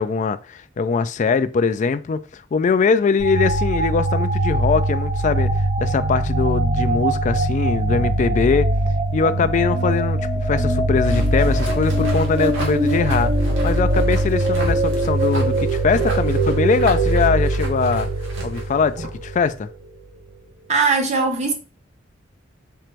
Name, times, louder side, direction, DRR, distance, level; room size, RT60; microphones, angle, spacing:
voice 1, 0.0-8.7 9.1-13.3 13.6-18.1 18.4-19.7, left 5 dB, 40° left, 0.3 m, -22 dB
sound 1, 3.2-19.5, right 1 dB, 60° right, 1.5 m, -21 dB
sound 2, 11.0-19.3, right 1 dB, 85° right, 1.6 m, -34 dB
voice 2, 20.7-21.5, right 4 dB, 35° right, 0.7 m, -19 dB
4.5 x 2.5 x 4.4 m
head